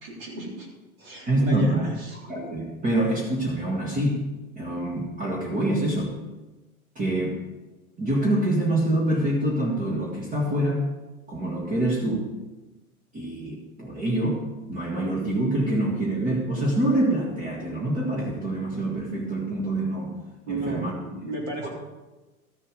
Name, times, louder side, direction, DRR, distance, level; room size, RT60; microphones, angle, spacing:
voice 1, 0.0-0.7 1.0-2.2 20.5-21.7, right 3 dB, 45° right, -2 dB, 3.4 m, -33 dB
voice 2, 1.3-1.9 2.1-4.2 4.6-6.2 7.0-7.4 8.0-10.9 11.3-12.3 13.1-14.4 14.7-20.1 20.5-20.9 21.6-21.7, right 1 dB, 20° right, -3 dB, 1.7 m, -25 dB
13.5 x 7.4 x 5.1 m, 1.1 s
figure-of-eight pair, 95°, 44 cm